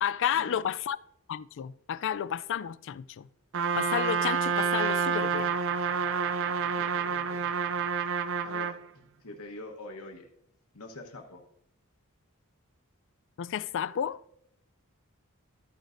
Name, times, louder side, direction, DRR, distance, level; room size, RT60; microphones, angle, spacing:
voice 1, 0.0-1.0 1.3-3.3 3.8-5.5 13.4-14.2, left 9 dB, 55° left, 0.3 m, -31 dB
Trumpet, 3.5-8.8, right 6 dB, 60° right, 0.5 m, -28 dB
voice 2, 6.7-7.5 8.4-10.3 10.7-11.4, left 2 dB, 75° left, 1.1 m, -45 dB
13.0 x 9.1 x 2.6 m
head